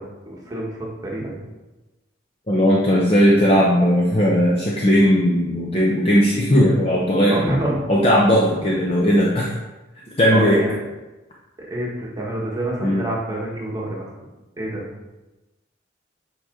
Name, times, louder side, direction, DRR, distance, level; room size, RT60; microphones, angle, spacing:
voice 1, 0.0-1.4 7.3-7.8 10.3-10.8 11.6-14.1 14.6-14.8, right 1 dB, 20° right, -3 dB, 1.4 m, -27 dB
voice 2, 2.5-7.5 7.9-9.5 10.2-10.6 12.8-13.0, equal, 30° left, -4 dB, 0.8 m, -17 dB
8.2 x 4.8 x 3.8 m, 1.1 s
head